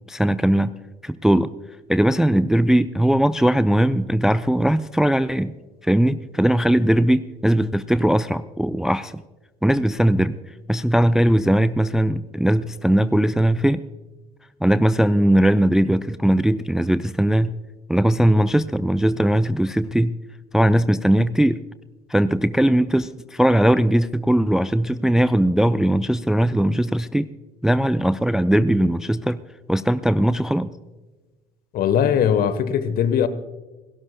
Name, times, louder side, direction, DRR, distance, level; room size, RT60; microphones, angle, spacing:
voice 1, 0.1-0.7 1.0-1.5 1.9-5.5 5.8-9.2 9.6-10.4 10.7-13.8 14.6-17.5 17.9-20.2 20.5-21.6 22.1-27.3 27.6-29.4 29.7-30.7, right 1 dB, ahead, 0.4 m, -19 dB
voice 2, 31.7-33.3, left 8 dB, 45° left, 1.1 m, -20 dB
28.5 x 12.5 x 2.2 m
figure-of-eight pair, 60°, 21 cm